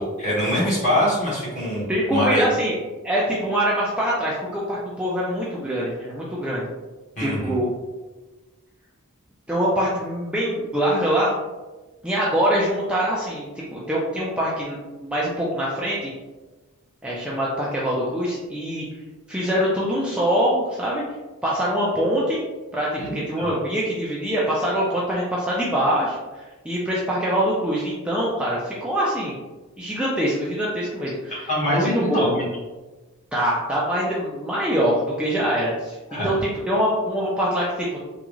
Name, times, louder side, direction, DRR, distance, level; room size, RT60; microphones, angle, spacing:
voice 1, 0.0-2.4 7.2-7.6 23.0-23.5 31.3-32.4 36.1-36.4, equal, 35° left, -7 dB, 1.5 m, -24 dB
voice 2, 1.9-2.8 3.0-6.7 7.2-7.7 9.5-11.3 12.0-16.1 17.0-18.8 19.3-21.0 21.4-22.4 22.7-29.3 29.8-32.3 33.3-38.0, equal, 5° right, -6 dB, 0.4 m, -24 dB
3.6 x 2.4 x 3.0 m, 1.2 s
head